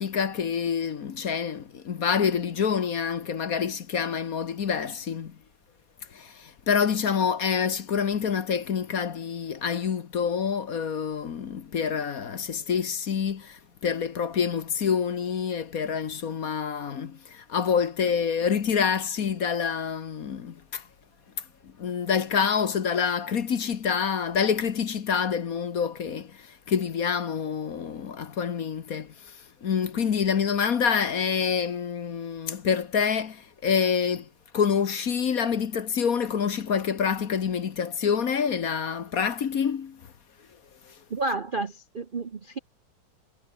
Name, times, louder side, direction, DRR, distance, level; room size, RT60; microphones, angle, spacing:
voice 1, 0.0-5.3 6.1-20.8 21.6-29.4 29.6-34.3 34.5-40.0 40.9-41.0, left 7 dB, 50° left, 1.5 m, -27 dB
voice 2, 41.1-42.6, right 3 dB, 40° right, 0.7 m, -31 dB
omnidirectional pair, 2.1 m